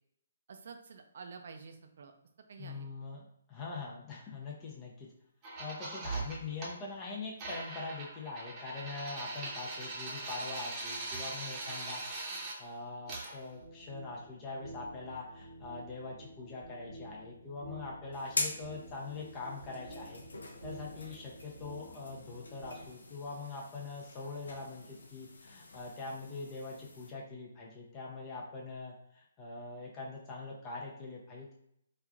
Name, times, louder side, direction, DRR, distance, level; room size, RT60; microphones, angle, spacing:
voice 1, 0.5-2.1 2.5-2.9, right 5 dB, 60° right, 5 dB, 0.4 m, -49 dB
voice 2, 2.6-5.1 5.6-20.2 20.6-31.5, left 3 dB, 25° left, -2 dB, 0.5 m, -43 dB
sound 1, 5.4-6.7 7.4-12.6 13.1-13.3, right 2 dB, 30° right, 0.7 m, -40 dB
sound 2, 13.5-22.9, equal, 80° right, 0.9 m, -51 dB
sound 3, 18.1-27.1, left 2 dB, 80° left, 0.5 m, -44 dB
3.2 x 2.4 x 2.3 m, 0.75 s
figure-of-eight pair, 140°, 0 cm